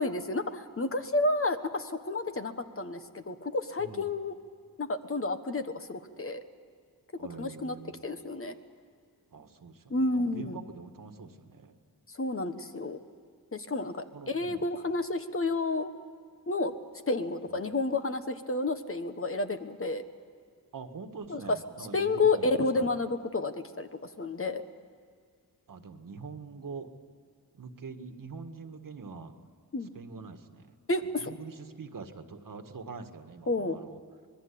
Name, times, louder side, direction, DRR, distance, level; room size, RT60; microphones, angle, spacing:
voice 1, 0.0-4.4 4.8-6.4 7.4-7.8 8.0-8.5 9.9-10.6 12.1-13.0 13.5-15.9 16.5-16.7 17.1-20.0 21.3-21.6 21.9-24.6 29.7-29.9 30.9-31.3 33.5-33.8, left 2 dB, 35° left, 8 dB, 1.3 m, -30 dB
voice 2, 7.2-7.9 9.3-11.8 14.1-14.7 17.5-17.6 20.7-22.9 25.7-26.9 27.5-29.3 29.9-30.7 31.2-34.0, right 4 dB, 60° right, 7 dB, 1.7 m, -44 dB
26.0 x 21.0 x 8.6 m, 2.1 s
wide cardioid pair, 120°, 37 cm